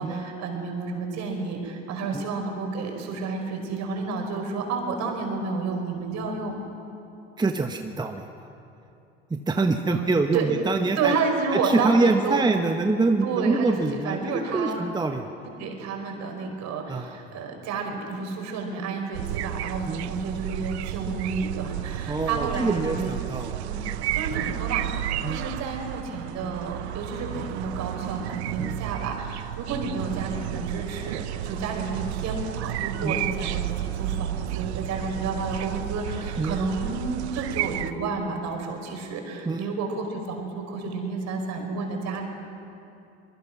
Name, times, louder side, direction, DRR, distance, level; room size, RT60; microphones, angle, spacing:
voice 1, 0.0-6.5 9.9-10.5 10.8-12.4 13.2-14.8 15.4-23.1 23.6-23.8 24.1-42.3, right 4 dB, 55° right, 2 dB, 5.1 m, -30 dB
voice 2, 7.4-8.2 9.3-11.1 11.5-15.3 16.9-17.2 19.9-20.0 22.1-23.7 24.3-24.6 25.2-25.4 28.6-28.8 33.0-33.2 36.4-36.6 39.5-39.6, right 3 dB, 15° right, 5 dB, 1.1 m, -25 dB
sound 1, 19.1-37.9, right 13 dB, 85° right, 0.8 m, -32 dB
24.5 x 21.5 x 6.1 m, 2.8 s
hypercardioid pair, 80°, 32 cm